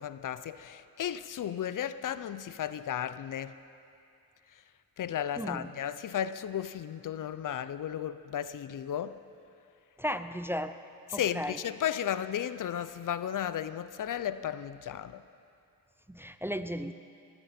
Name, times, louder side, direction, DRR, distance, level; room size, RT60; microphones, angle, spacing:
voice 1, 0.0-3.6 5.0-9.2 11.1-15.2, left 9 dB, 60° left, 14 dB, 0.6 m, -34 dB
voice 2, 5.4-5.7 10.0-10.7 11.1-11.6 16.1-16.9, equal, 5° right, 10 dB, 0.5 m, -35 dB
19.5 x 14.5 x 4.3 m, 2.6 s
cardioid pair, 70°, 35 cm